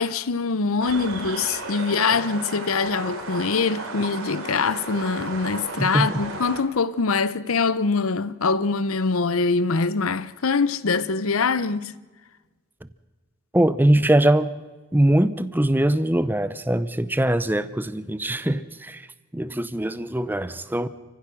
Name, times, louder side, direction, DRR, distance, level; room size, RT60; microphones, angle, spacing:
voice 1, 0.0-11.9, left 4 dB, 80° left, 0.8 m, -23 dB
sound 1, 0.8-6.6, right 3 dB, 75° right, 3.4 m, -34 dB
voice 2, 5.8-6.1 13.5-14.5 14.9-19.1 19.3-20.9, right 1 dB, 10° right, 0.6 m, -22 dB
28.5 x 15.5 x 6.3 m
head